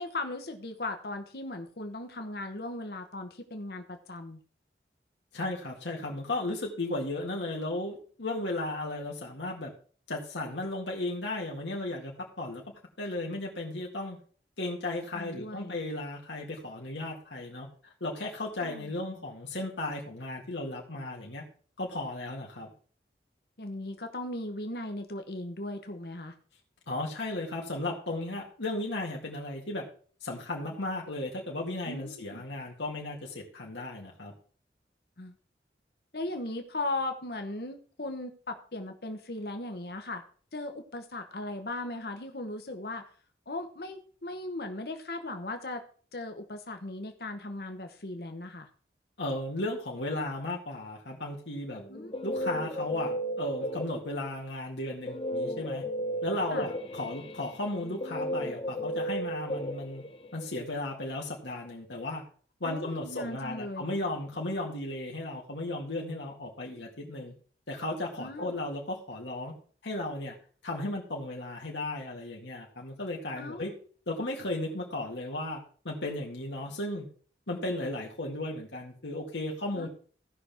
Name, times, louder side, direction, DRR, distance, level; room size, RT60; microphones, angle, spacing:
voice 1, 0.0-4.4 15.1-15.8 18.6-19.1 23.6-26.3 31.9-32.4 35.2-35.4 36.1-40.2 40.5-43.1 43.5-45.8 46.1-48.7 51.9-52.1 56.5-56.7 62.6-63.9 68.2-68.5 73.4-73.7 79.7-79.9, left 2 dB, 60° left, 6 dB, 1.1 m, -38 dB
voice 2, 5.3-9.7 10.1-12.6 13.0-14.2 14.6-17.7 18.0-21.4 21.8-22.7 26.9-29.8 30.2-34.3 49.2-51.8 52.2-55.8 56.2-60.0 60.3-62.2 62.6-67.3 67.7-69.5 69.8-70.4 70.6-73.7 74.1-77.1 77.5-79.9, left 2 dB, 90° left, -2 dB, 2.0 m, -35 dB
Guitar, 51.8-54.3 55.1-60.5, equal, 30° left, 0.7 m, -34 dB
16.5 x 5.9 x 3.5 m, 0.43 s
head